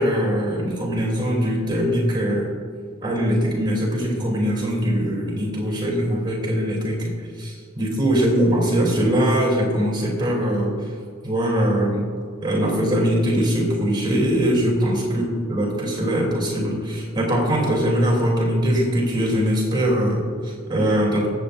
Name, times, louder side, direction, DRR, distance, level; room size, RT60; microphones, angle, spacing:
voice 1, 0.0-2.5 3.0-7.1 7.4-10.7 11.2-12.1 12.4-21.3, equal, 20° right, -3 dB, 2.9 m, -21 dB
23.0 x 8.1 x 2.6 m, 2.1 s
head